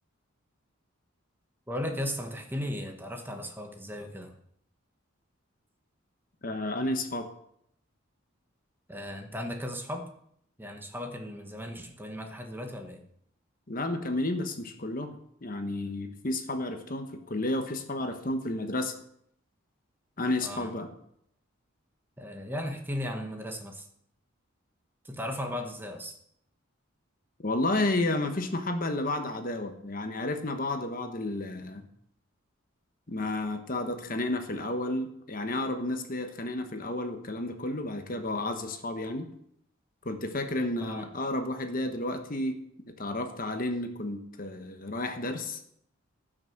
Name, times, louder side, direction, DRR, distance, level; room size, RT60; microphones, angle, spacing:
voice 1, 1.7-4.3 8.9-10.0 10.6-13.0 20.4-20.7 22.2-23.9 25.0-26.1 40.8-41.1, equal, 10° right, 4 dB, 1.2 m, -36 dB
voice 2, 6.4-7.3 13.7-15.2 15.4-18.9 20.2-20.9 27.4-31.8 33.1-39.3 40.0-42.6 42.9-45.6, left 2 dB, 40° left, 6 dB, 1.2 m, -31 dB
15.5 x 6.2 x 6.6 m, 0.71 s
head